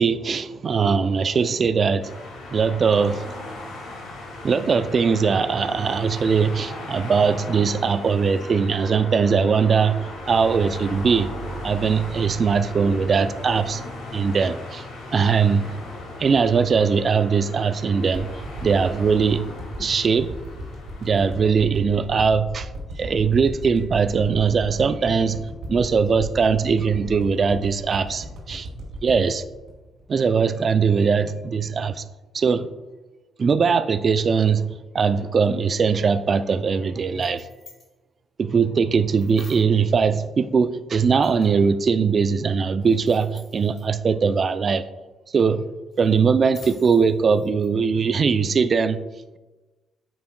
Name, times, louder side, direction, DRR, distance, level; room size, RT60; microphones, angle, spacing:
voice 1, 0.0-2.1 2.5-3.3 4.4-11.3 11.6-13.8 14.1-14.9 15.1-15.7 16.2-19.5 19.8-20.3 21.0-22.7 23.0-28.7 29.0-29.4 30.1-32.0 32.3-32.7 33.4-37.5 38.4-44.8 45.3-45.7 46.0-49.0, right 5 dB, 45° right, 0.3 m, -21 dB
sound 1, 2.0-21.4, left 1 dB, 80° left, 1.9 m, -37 dB
sound 2, 18.1-30.5 30.9-31.0, right 1 dB, 80° right, 2.0 m, -36 dB
sound 3, 37.0-37.9 39.2-39.8 41.2-41.7 42.8-43.9 45.9-47.7, left 3 dB, 45° left, 2.0 m, -48 dB
8.5 x 5.9 x 2.2 m
cardioid pair, 90°, 0 cm